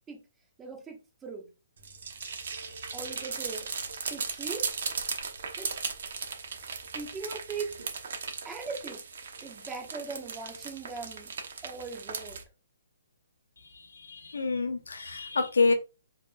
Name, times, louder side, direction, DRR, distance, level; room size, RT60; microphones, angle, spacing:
voice 1, 0.6-1.5 2.9-3.7 4.1-4.6 5.6-5.7 6.9-7.7 8.4-9.0 9.4-11.3 11.6-12.4, right 4 dB, 15° right, 1.2 m, -39 dB
sound 1, 1.8-12.4, right 5 dB, 65° right, 1.0 m, -37 dB
voice 2, 14.1-15.7, left 4 dB, 90° left, 0.9 m, -27 dB
4.8 x 3.4 x 2.3 m
hypercardioid pair, 155°, 0 cm